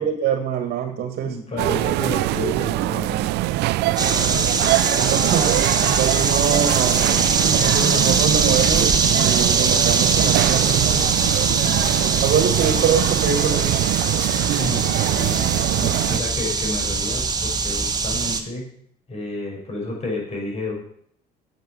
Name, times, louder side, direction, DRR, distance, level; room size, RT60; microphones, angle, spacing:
voice 1, 0.0-1.4 4.9-7.1 7.4-11.1 12.2-13.8, right 7 dB, 65° right, 6 dB, 1.9 m, -24 dB
voice 2, 1.2-3.4 3.8-4.4 11.2-12.3 12.7-12.8 14.6-18.6 19.1-20.7, left 2 dB, 40° left, 0 dB, 6.0 m, -31 dB
sound 1, 1.6-16.2, right 17 dB, 80° right, 0.4 m, -23 dB
sound 2, 4.0-18.4, right 4 dB, 25° right, 1.5 m, -22 dB
10.5 x 8.3 x 7.9 m, 0.65 s
cardioid pair, 110°, 17 cm